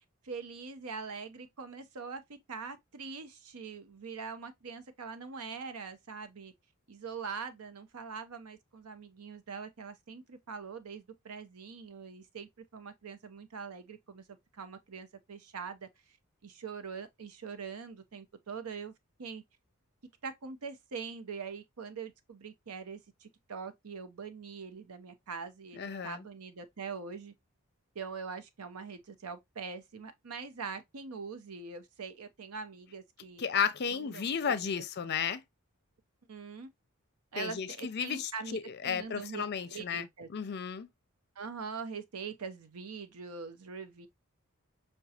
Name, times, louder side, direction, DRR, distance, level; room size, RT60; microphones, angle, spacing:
voice 1, 0.2-2.2 2.5-6.5 6.9-14.2 14.5-16.2 16.4-18.9 19.2-19.4 20.2-27.3 27.9-33.4 33.9-35.1 36.3-36.7 37.3-40.3 41.4-44.1, right 5 dB, 85° right, 0.7 m, -43 dB
voice 2, 25.8-26.2 33.4-35.4 37.4-40.9, left 7 dB, 50° left, 0.5 m, -33 dB
5.9 x 2.2 x 2.7 m
head